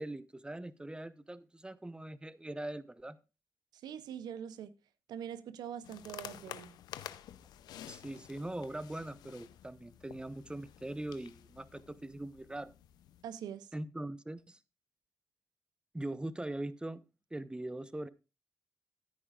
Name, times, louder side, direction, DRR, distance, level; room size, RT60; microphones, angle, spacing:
voice 1, 0.0-3.2 7.9-12.7 13.7-14.6 15.9-17.0 17.3-18.1, right 1 dB, 15° right, 0.8 m, -41 dB
voice 2, 3.7-4.7 5.1-6.8 13.2-13.7, right 9 dB, 85° right, 0.6 m, -43 dB
sound 1, 5.8-13.2, left 11 dB, 90° left, 0.5 m, -51 dB
13.5 x 9.9 x 2.4 m
supercardioid pair, 50°, 7 cm